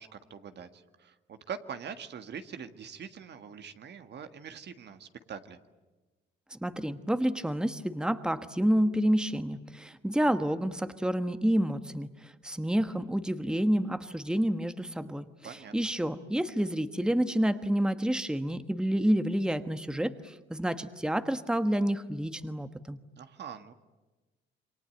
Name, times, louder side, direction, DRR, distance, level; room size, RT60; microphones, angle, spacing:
voice 1, 0.0-5.6 15.4-15.7 23.2-23.7, right 7 dB, 60° right, 9 dB, 1.7 m, -43 dB
voice 2, 6.5-23.0, equal, 5° right, 10 dB, 1.3 m, -29 dB
28.0 x 23.5 x 9.2 m, 1.2 s
cardioid pair, 90°, 20 cm